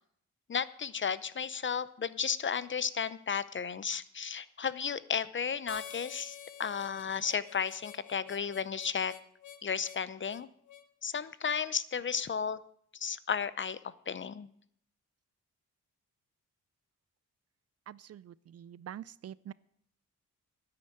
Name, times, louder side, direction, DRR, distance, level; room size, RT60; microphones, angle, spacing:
voice 1, 0.5-9.1 9.6-10.5 11.0-12.6 12.9-14.5, left 6 dB, 35° left, 17 dB, 0.6 m, -34 dB
Harmonica, 5.7-10.9, left 9 dB, 65° left, 1.0 m, -49 dB
voice 2, 17.9-19.5, right 10 dB, 50° right, 21 dB, 0.4 m, -46 dB
9.8 x 9.7 x 7.7 m, 0.67 s
cardioid pair, 85°, 32 cm